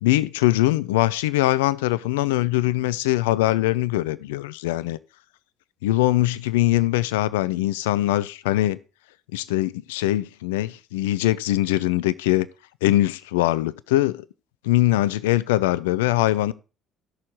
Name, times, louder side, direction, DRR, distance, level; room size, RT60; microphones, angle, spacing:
voice 1, 0.0-5.0 5.8-8.8 9.3-12.5 12.8-14.3 14.6-16.5, left 16 dB, 70° left, 0.4 m, -22 dB
17.0 x 6.4 x 3.1 m
figure-of-eight pair, 50°, 0 cm